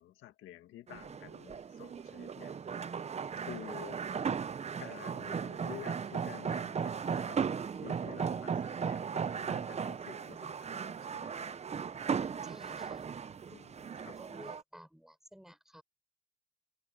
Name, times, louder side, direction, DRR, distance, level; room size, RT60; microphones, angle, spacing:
voice 1, 0.0-2.6 3.1-4.3 4.8-7.4 7.7-11.4 13.5-14.2, left 14 dB, 85° left, 1.7 m, -51 dB
sound 1, 0.9-14.6, right 6 dB, 35° right, 0.7 m, -37 dB
voice 2, 12.4-13.1 14.0-15.8, equal, ahead, 7.2 m, -54 dB
cardioid pair, 90°, 20 cm